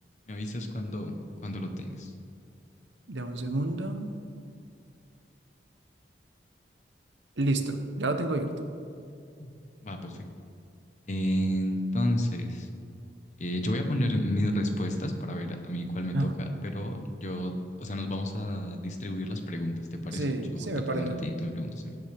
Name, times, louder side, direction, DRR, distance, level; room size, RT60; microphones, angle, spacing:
voice 1, 0.3-1.1 1.4-2.1 9.4-9.5 9.8-10.2 11.1-12.7 13.4-17.5 17.8-20.2 20.5-22.0, equal, 40° left, 5 dB, 1.0 m, -31 dB
voice 2, 3.1-4.1 7.4-8.5 16.1-16.3 16.7-16.8 20.1-21.2, right 2 dB, 85° right, 7 dB, 1.0 m, -30 dB
17.0 x 8.2 x 3.5 m, 2.5 s
head